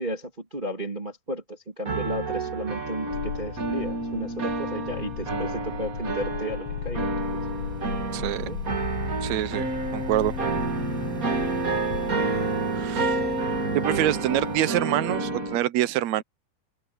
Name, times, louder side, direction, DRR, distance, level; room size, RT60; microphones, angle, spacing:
voice 1, 0.0-7.1 7.3-7.4 8.4-8.6, right 1 dB, 15° right, 2.5 m, -33 dB
sound 1, 1.8-15.6, right 3 dB, 35° right, 1.5 m, -29 dB
sound 2, 3.1-12.5, left 8 dB, 85° left, 3.7 m, -36 dB
sound 3, 7.2-14.6, equal, ahead, 6.7 m, -47 dB
voice 2, 8.1-8.5 9.2-9.7 9.9-10.3 12.7-13.1 13.7-16.2, right 14 dB, 70° right, 1.7 m, -25 dB
open air
omnidirectional pair, 4.3 m